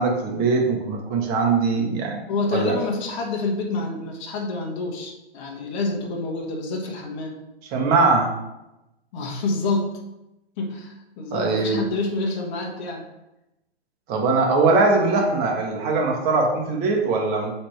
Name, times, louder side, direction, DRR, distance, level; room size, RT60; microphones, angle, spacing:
voice 1, 0.0-2.2 2.5-2.7 7.7-8.3 11.3-11.8 14.1-17.5, right 3 dB, 30° right, 0 dB, 1.4 m, -21 dB
voice 2, 2.3-7.4 9.1-9.9 10.6-13.0, left 3 dB, 45° left, 0 dB, 1.4 m, -28 dB
7.6 x 4.3 x 3.3 m, 0.94 s
hypercardioid pair, 130°, 32 cm